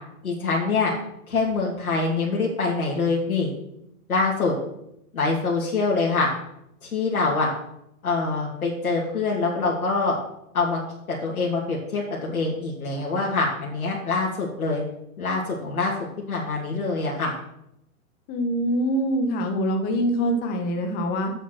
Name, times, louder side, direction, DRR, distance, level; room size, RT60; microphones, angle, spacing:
voice 1, 0.2-0.9 1.3-3.5 4.1-4.5 5.1-6.3 6.8-7.5 8.0-10.2 10.5-10.8 11.1-14.8 15.2-15.9 16.3-17.3, left 3 dB, 70° left, -4 dB, 2.9 m, -24 dB
voice 2, 18.3-21.3, equal, 20° left, 5 dB, 1.5 m, -24 dB
8.2 x 7.4 x 6.4 m, 0.79 s
hypercardioid pair, 140°, 44 cm